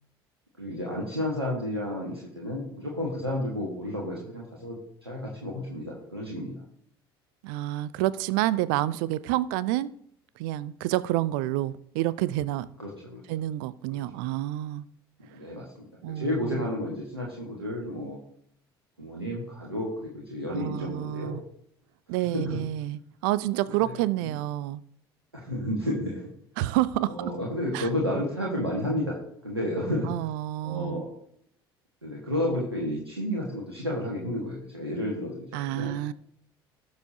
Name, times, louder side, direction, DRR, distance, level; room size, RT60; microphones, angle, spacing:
voice 1, 0.6-4.8 5.0-6.5 12.8-13.2 13.9-14.0 15.3-18.2 19.0-21.4 22.3-22.6 23.7-24.0 24.2-24.3 25.3-26.3 27.1-29.2 29.4-30.1 30.6-31.1 32.0-35.9, left 1 dB, 85° right, 1.5 m, -31 dB
voice 2, 7.4-9.9 10.4-12.7 13.3-14.8 16.0-16.7 20.5-21.4 22.1-24.8 26.6-27.3 27.7-27.9 30.0-31.0 35.5-36.1, right 15 dB, 55° right, 0.5 m, -29 dB
17.5 x 6.9 x 2.7 m
figure-of-eight pair, 60°, 13 cm